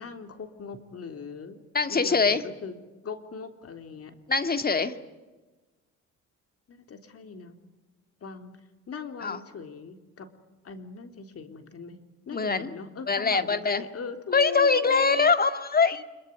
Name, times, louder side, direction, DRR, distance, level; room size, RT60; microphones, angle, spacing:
voice 1, 0.0-1.6 1.9-2.8 3.0-4.2 6.7-7.5 8.2-8.6 8.9-10.3 10.6-15.4 15.9-16.0, left 5 dB, 50° left, 7 dB, 3.7 m, -40 dB
voice 2, 1.7-2.4 4.3-4.9 9.2-9.4 12.3-12.7 13.1-13.8 14.3-16.0, left 4 dB, 30° left, 9 dB, 2.2 m, -23 dB
26.0 x 23.0 x 9.5 m, 1.2 s
cardioid pair, 90°, 30 cm